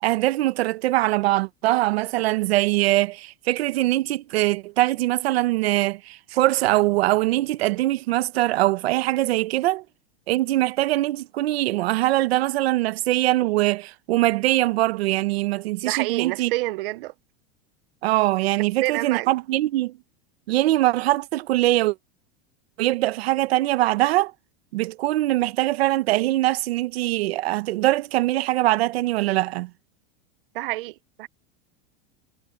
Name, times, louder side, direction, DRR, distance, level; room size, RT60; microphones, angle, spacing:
voice 1, 0.0-9.8 10.3-16.5 18.0-20.0 20.5-21.9 22.8-24.3 24.7-29.7, right 17 dB, 80° right, 1.2 m, -22 dB
voice 2, 15.8-17.1 18.8-19.3 30.5-31.3, right 19 dB, 60° right, 0.7 m, -28 dB
supercardioid pair, 170°, 31 cm